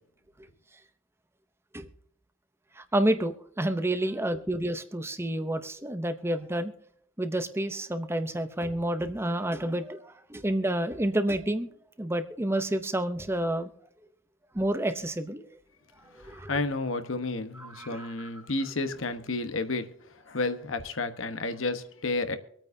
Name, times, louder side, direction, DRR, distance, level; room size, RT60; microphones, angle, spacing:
voice 1, 2.8-6.7 7.2-11.7 12.0-13.7 14.5-15.4 16.2-16.5 17.6-18.3, right 1 dB, 10° right, 0.7 m, -29 dB
voice 2, 16.2-19.9 20.2-22.4, left 3 dB, 85° left, 1.2 m, -31 dB
24.5 x 8.9 x 2.7 m
head